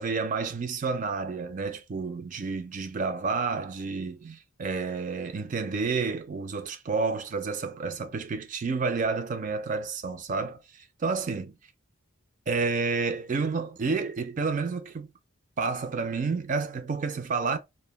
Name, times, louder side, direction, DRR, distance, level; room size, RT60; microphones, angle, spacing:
voice 1, 0.0-11.5 12.5-15.1 15.6-17.6, right 4 dB, 35° right, 0.3 m, -30 dB
2.2 x 2.1 x 3.1 m
head